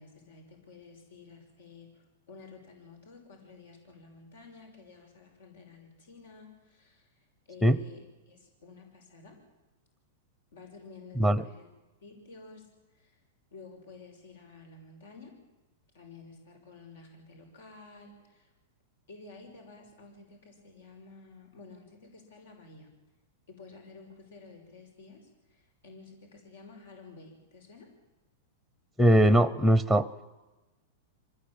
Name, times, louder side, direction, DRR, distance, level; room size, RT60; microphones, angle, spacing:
voice 1, 0.0-9.4 10.5-11.7 12.0-13.2 13.5-15.4 15.9-18.5 19.1-22.9 23.5-27.9, left 4 dB, 90° left, 4 dB, 5.9 m, -52 dB
voice 2, 29.0-30.1, right 1 dB, 5° left, 14 dB, 0.7 m, -21 dB
25.0 x 18.5 x 9.0 m, 1.1 s
supercardioid pair, 150°, 0 cm